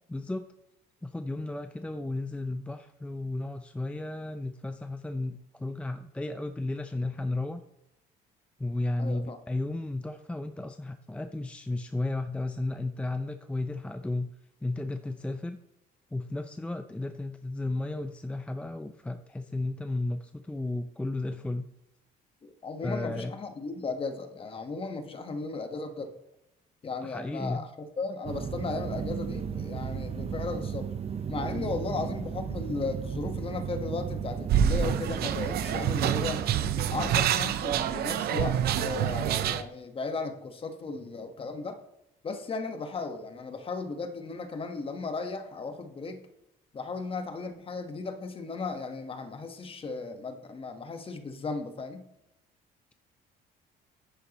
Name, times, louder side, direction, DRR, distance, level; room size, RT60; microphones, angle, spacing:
voice 1, 0.1-0.5 1.0-7.6 8.6-14.3 14.6-15.6 16.1-21.7 22.8-23.3 27.0-27.7, left 2 dB, 5° left, 8 dB, 0.5 m, -33 dB
voice 2, 9.0-9.4 22.4-26.1 26.8-30.9 31.3-36.4 36.9-41.8 42.2-46.3 46.7-52.1, left 4 dB, 35° left, 7 dB, 1.3 m, -36 dB
sound 1, 28.2-37.2, right 7 dB, 35° right, 0.8 m, -35 dB
sound 2, 34.5-39.6, right 9 dB, 70° right, 0.7 m, -27 dB
10.0 x 9.3 x 3.0 m, 0.85 s
cardioid pair, 110°, 17 cm